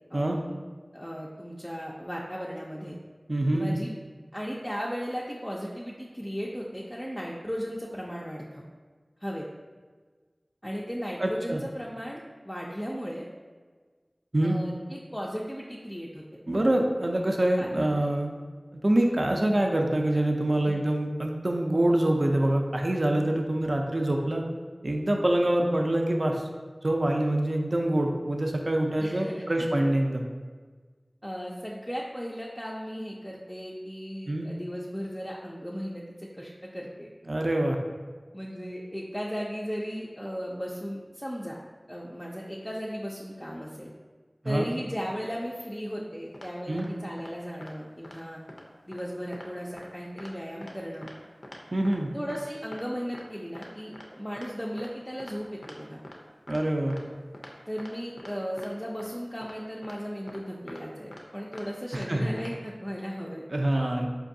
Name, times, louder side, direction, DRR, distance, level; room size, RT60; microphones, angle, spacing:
voice 1, 0.1-0.6 0.9-3.0 3.5-3.9 4.3-8.6 9.2-9.4 10.6-13.3 14.4-16.4 17.6-18.1 20.7-20.8 29.0-29.7 31.2-37.1 38.3-41.6 41.9-43.9 44.4-48.4 48.9-51.1 52.1-56.0 57.7-63.4, equal, 10° left, -4 dB, 0.4 m, -36 dB
voice 2, 3.3-3.8 11.2-11.6 14.3-14.6 16.5-18.4 18.8-24.4 24.8-26.4 26.8-30.2 34.3-34.5 37.3-37.8 44.4-44.7 46.7-46.9 51.7-52.1 56.5-56.9 61.9-62.3 63.5-64.1, right 1 dB, 60° right, 2 dB, 0.4 m, -25 dB
sound 1, 46.3-46.5 46.8-46.9 47.2-47.3 47.6-47.7 48.0-48.2 48.5-48.6 48.9-49.0 49.3-49.5 49.8-49.9 50.2-50.3 50.6-50.7 51.0-51.1 51.4-51.6 51.8-52.0 52.3-52.4 52.7-52.8 53.1-53.2 53.5-53.7 53.9-54.0 54.4-54.5 54.8-54.9 55.2-55.3 55.6-55.7 56.0-56.2 56.5-56.6 56.9-57.0 57.3-57.5 57.8-57.9 58.2-58.3 58.6-58.7 59.0-59.1 59.4-59.5 59.8-59.9 60.3-60.4 60.7-60.8 61.1-61.2 61.5-61.6 61.9-62.1 62.4-62.5, left 1 dB, 85° left, 0.5 m, -44 dB
4.6 x 2.6 x 2.6 m, 1.5 s
wide cardioid pair, 50°, 0 cm